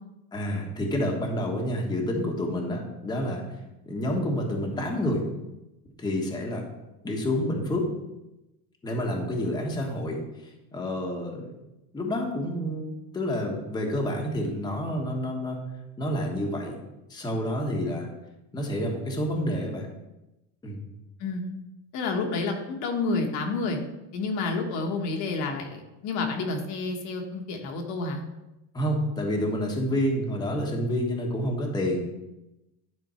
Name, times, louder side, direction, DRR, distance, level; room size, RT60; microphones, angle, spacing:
voice 1, 0.3-3.4 3.9-5.2 6.0-6.6 7.0-7.8 8.8-10.2 10.7-11.4 11.9-15.6 16.0-16.8 17.1-18.1 18.5-19.9 20.6-20.8 28.7-32.0, equal, 10° left, 0 dB, 1.2 m, -28 dB
voice 2, 21.9-23.8 24.1-28.2, left 3 dB, 50° left, 2 dB, 1.4 m, -29 dB
10.5 x 4.4 x 4.3 m, 0.96 s
supercardioid pair, 150°, 38 cm